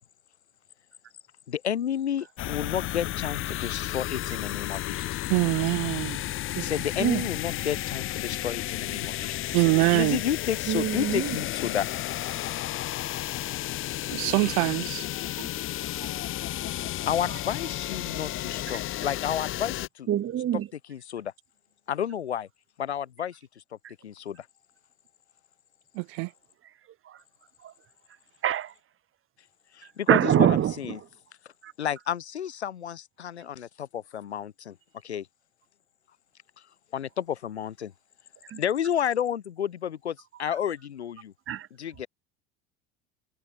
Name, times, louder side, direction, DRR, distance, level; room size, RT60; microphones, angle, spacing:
voice 1, 1.5-5.2 6.6-9.4 9.7-11.9 17.1-20.1 20.9-21.3 21.9-22.5 22.8-23.4 24.0-24.5 29.7-31.0 31.8-34.8 35.0-35.3 36.9-37.9 38.6-41.3 41.8-42.1, left 9 dB, 85° left, 3.9 m, -31 dB
sound 1, 2.4-19.9, left 15 dB, 40° left, 0.7 m, -33 dB
voice 2, 5.3-6.2 9.5-10.2 14.1-15.1 25.9-26.3, right 40 dB or more, 65° right, 1.4 m, -24 dB
voice 3, 10.7-11.4 15.4-15.5 16.0-16.1 16.5-16.6 17.3-17.4 18.7-18.8 20.1-20.7 23.8-23.9 27.0-27.2 27.6-27.7 28.4-28.7 30.1-31.1 31.6-31.7 38.4-38.6 41.5-41.7, right 11 dB, 40° right, 3.0 m, -26 dB
hypercardioid pair, 75°, 32 cm